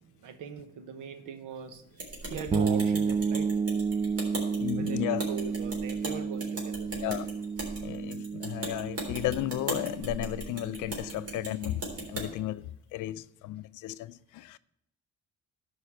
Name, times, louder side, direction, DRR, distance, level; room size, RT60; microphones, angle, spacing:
voice 1, 0.2-3.5 4.7-6.9, right 7 dB, 90° right, 1.0 m, -40 dB
sound 1, 2.0-12.3, right 1 dB, 50° right, 3.7 m, -39 dB
sound 2, 2.5-12.1, right 5 dB, 20° right, 0.5 m, -32 dB
voice 2, 4.6-5.2 7.0-7.3 7.8-14.6, left 15 dB, 85° left, 0.5 m, -34 dB
12.0 x 5.2 x 5.9 m
cardioid pair, 90°, 30 cm